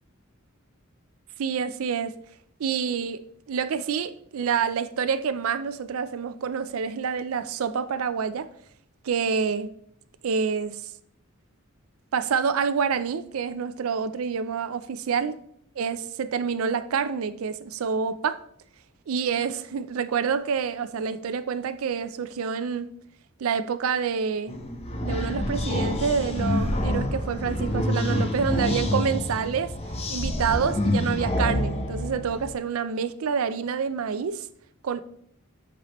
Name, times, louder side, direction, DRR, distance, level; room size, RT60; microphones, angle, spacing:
voice 1, 1.4-2.1 2.6-3.2 3.5-8.5 9.0-9.7 10.2-10.9 12.1-15.3 15.8-18.4 19.1-22.9 23.4-24.6 25.0-29.7 30.1-34.5 34.8-35.0, right 6 dB, 85° right, 0.4 m, -27 dB
sound 1, 24.5-32.6, left 1 dB, 30° left, 0.7 m, -27 dB
8.0 x 4.2 x 3.0 m
head